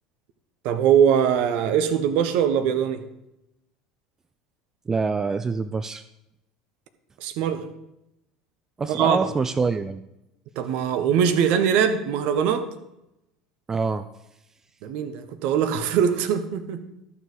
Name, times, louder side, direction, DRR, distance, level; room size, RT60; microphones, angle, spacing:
voice 1, 0.6-3.0 7.2-7.7 8.9-9.3 10.6-12.7 14.8-16.8, right 8 dB, 55° right, 9 dB, 0.9 m, -22 dB
voice 2, 4.9-6.0 8.8-10.0 13.7-14.1, right 4 dB, 20° right, 12 dB, 0.4 m, -25 dB
12.0 x 6.7 x 5.1 m, 0.87 s
figure-of-eight pair, 70°, 2 cm